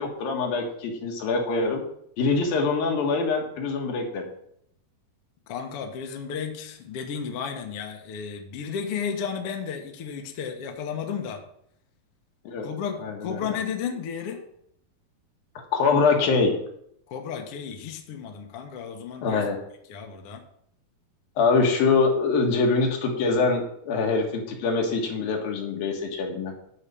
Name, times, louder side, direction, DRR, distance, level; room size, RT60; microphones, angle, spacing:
voice 1, 0.0-1.8 2.2-4.3 12.4-12.7 13.0-13.6 15.7-16.5 19.2-19.6 21.4-26.5, left 4 dB, 80° left, 1 dB, 3.4 m, -24 dB
voice 2, 5.5-11.4 12.6-14.4 17.1-19.4 19.9-20.4, left 7 dB, 60° left, 3 dB, 1.6 m, -33 dB
11.0 x 4.9 x 6.9 m, 0.71 s
omnidirectional pair, 4.1 m